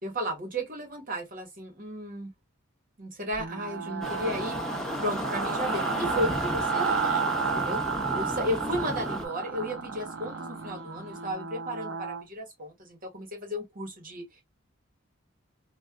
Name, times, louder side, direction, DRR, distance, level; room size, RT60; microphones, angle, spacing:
voice 1, 0.0-2.3 3.0-4.6 5.0-7.0 7.5-7.8 8.1-14.2, equal, 45° right, 1.5 m, -34 dB
sound 1, 3.3-12.2, right 5 dB, 75° right, 0.7 m, -32 dB
sound 2, 3.5-11.3, left 1 dB, 15° right, 2.0 m, -53 dB
sound 3, 4.0-9.3, left 1 dB, ahead, 0.7 m, -34 dB
3.2 x 2.5 x 2.3 m
head